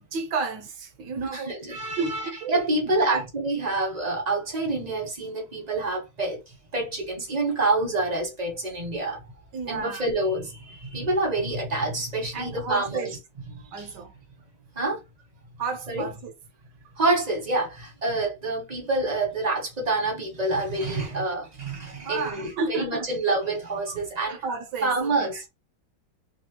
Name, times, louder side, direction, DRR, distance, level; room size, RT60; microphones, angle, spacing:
voice 1, 0.1-1.6 2.0-2.6 3.0-3.2 9.5-10.0 12.3-13.1 13.6-14.1 15.6-16.3 22.0-23.1 23.9-25.3, right 4 dB, 65° right, 1.2 m, -32 dB
voice 2, 1.3-9.3 9.7-13.2 13.8-13.9 14.7-15.0 15.9-16.0 16.9-24.4 24.8-25.5, right 2 dB, 30° right, 0.7 m, -27 dB
3.4 x 2.7 x 3.0 m
omnidirectional pair, 2.4 m